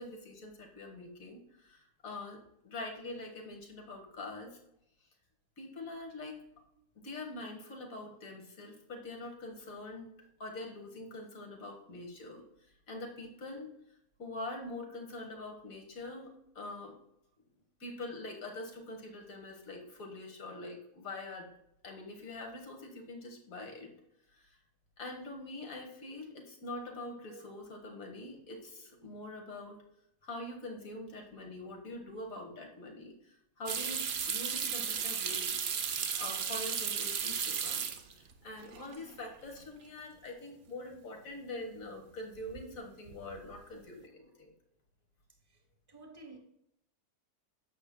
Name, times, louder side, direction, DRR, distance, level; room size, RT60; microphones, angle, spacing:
voice 1, 0.0-2.4 2.6-4.6 5.6-6.4 7.0-10.1 10.4-12.4 12.9-13.8 14.2-16.3 16.6-17.0 17.8-21.5 21.8-24.0 24.3-24.6 25.0-29.8 30.2-37.9 38.1-44.5, left 2 dB, 60° left, 2 dB, 1.8 m, -44 dB
voice 2, 27.0-27.4 45.9-46.4, right 3 dB, 15° right, 3 dB, 1.0 m, -52 dB
sound 1, 33.7-38.3 38.6-39.2 39.6-39.7 42.4-42.8 43.1-43.6, right 7 dB, 55° right, 0.7 m, -35 dB
11.5 x 7.4 x 2.2 m, 0.77 s
omnidirectional pair, 1.6 m